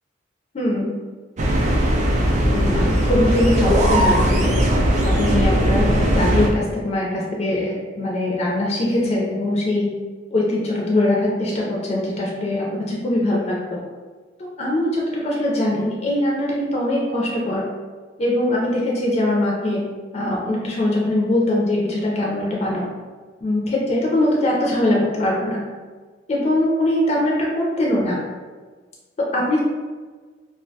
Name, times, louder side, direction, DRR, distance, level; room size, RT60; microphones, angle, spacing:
voice 1, 0.5-0.9 2.5-4.6 5.2-9.9 10.3-13.8 14.4-17.7 18.2-19.8 20.1-22.9 23.4-25.6 26.3-28.2 29.3-29.6, left 1 dB, 35° left, -4 dB, 0.4 m, -22 dB
sound 1, 1.4-6.5, equal, 40° right, 0.4 m, -18 dB
2.3 x 2.1 x 2.6 m, 1.4 s
head